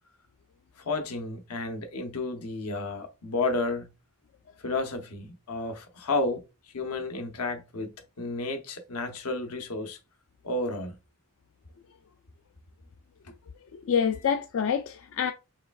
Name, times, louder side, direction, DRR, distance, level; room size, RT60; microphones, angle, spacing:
voice 1, 0.8-3.9 4.6-6.4 6.7-10.0 10.4-11.0 13.2-13.4 14.1-14.2, left 2 dB, 85° left, 0.8 m, -32 dB
voice 2, 13.7-15.3, left 7 dB, 60° left, 0.3 m, -27 dB
4.8 x 3.3 x 2.3 m
head